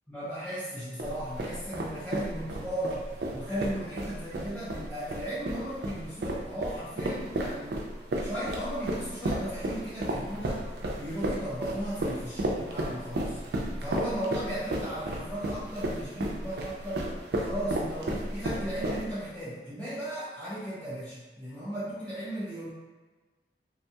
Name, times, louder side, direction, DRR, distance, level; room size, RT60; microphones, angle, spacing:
voice 1, 0.1-7.8 8.2-10.7 10.9-13.4 13.8-22.7, right 1 dB, 5° left, -13 dB, 0.5 m, -36 dB
sound 1, 1.0-19.3, right 1 dB, 60° right, 0.4 m, -33 dB
2.6 x 2.2 x 2.7 m, 1.3 s
head